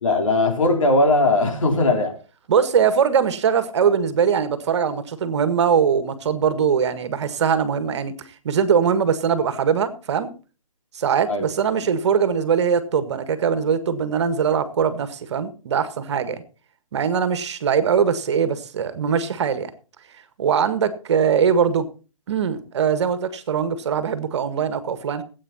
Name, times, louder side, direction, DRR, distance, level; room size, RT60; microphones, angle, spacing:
voice 1, 0.0-2.1 11.3-11.4, left 2 dB, 70° left, 4.1 m, -19 dB
voice 2, 2.5-8.1 8.4-10.3 10.9-16.4 16.9-19.7 20.4-21.9 22.3-25.2, right 7 dB, 55° right, 1.8 m, -21 dB
17.5 x 8.7 x 4.2 m
hypercardioid pair, 140°, 17 cm